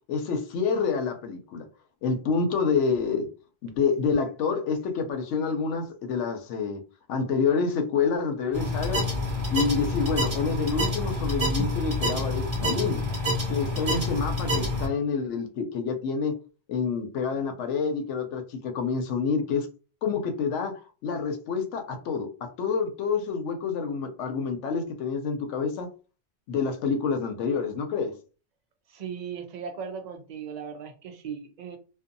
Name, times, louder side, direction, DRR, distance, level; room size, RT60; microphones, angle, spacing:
voice 1, 0.1-1.7 2.0-3.3 3.6-6.8 7.1-9.1 9.5-13.0 13.5-16.3 16.7-19.7 20.0-20.7 21.0-22.3 22.6-25.9 26.5-28.1, left 5 dB, 85° left, 0.9 m, -27 dB
sound 1, 8.5-14.9, left 1 dB, 35° right, 1.0 m, -27 dB
voice 2, 28.9-31.8, right 7 dB, 55° right, 0.5 m, -37 dB
2.6 x 2.3 x 2.5 m
omnidirectional pair, 1.2 m